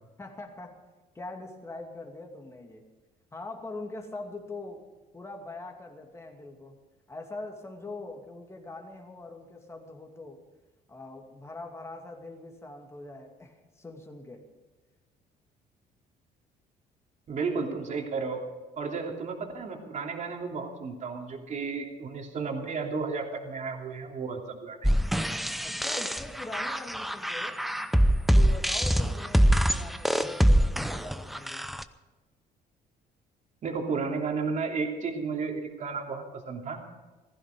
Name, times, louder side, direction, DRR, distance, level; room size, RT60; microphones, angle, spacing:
voice 1, 0.2-0.8 1.1-2.8 3.3-4.8 5.1-6.8 7.1-10.4 10.9-14.5 25.6-27.6 28.3-31.7, left 2 dB, 15° left, 2 dB, 2.5 m, -42 dB
voice 2, 17.3-18.4 18.8-24.8 33.6-37.1, right 4 dB, 45° right, 2 dB, 2.9 m, -33 dB
sound 1, 24.8-31.8, equal, ahead, 0.7 m, -24 dB
16.0 x 15.0 x 5.3 m, 1.2 s
cardioid pair, 110°, 17 cm